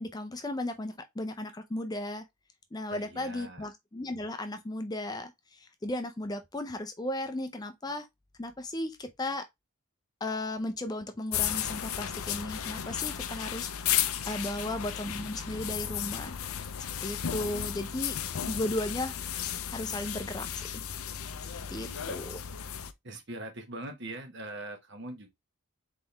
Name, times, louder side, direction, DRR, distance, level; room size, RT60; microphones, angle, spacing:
voice 1, 0.0-2.2 2.7-8.1 8.4-9.4 10.2-14.0 14.3-16.7 17.0-18.2 18.5-19.2 19.7-20.6 21.5-22.4, left 1 dB, 20° left, 0.5 m, -35 dB
voice 2, 2.9-3.7 14.5-14.8 21.5-22.1 23.0-25.3, right 1 dB, 55° right, 1.2 m, -43 dB
sound 1, 11.3-22.9, left 9 dB, 85° left, 0.5 m, -34 dB
4.1 x 3.8 x 3.3 m
head